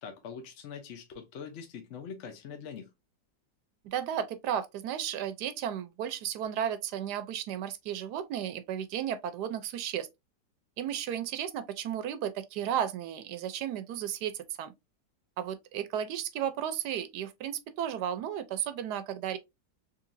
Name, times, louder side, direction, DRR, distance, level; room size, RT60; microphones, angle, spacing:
voice 1, 0.0-2.9, left 6 dB, 60° left, 0.8 m, -43 dB
voice 2, 3.8-10.1 10.8-14.7 15.4-19.4, right 10 dB, 75° right, 1.1 m, -34 dB
3.8 x 3.1 x 2.5 m
omnidirectional pair, 1.9 m